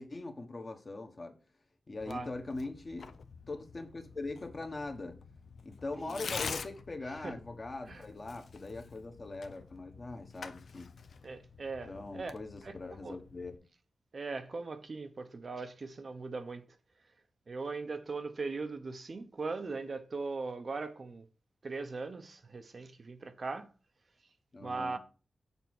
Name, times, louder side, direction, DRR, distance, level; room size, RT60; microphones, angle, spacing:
voice 1, 0.0-1.4 1.9-3.1 3.5-5.2 5.6-10.9 11.8-13.6 24.5-25.0, left 3 dB, 35° left, 1.2 m, -41 dB
Tearing, 2.0-13.6, left 5 dB, 65° left, 0.6 m, -47 dB
voice 2, 11.2-12.3 12.6-12.8 13.0-13.2 14.1-16.6 17.5-21.2 21.6-23.7 24.6-25.0, right 3 dB, 45° right, 0.7 m, -39 dB
7.0 x 4.4 x 6.1 m
wide cardioid pair, 155°, 0 cm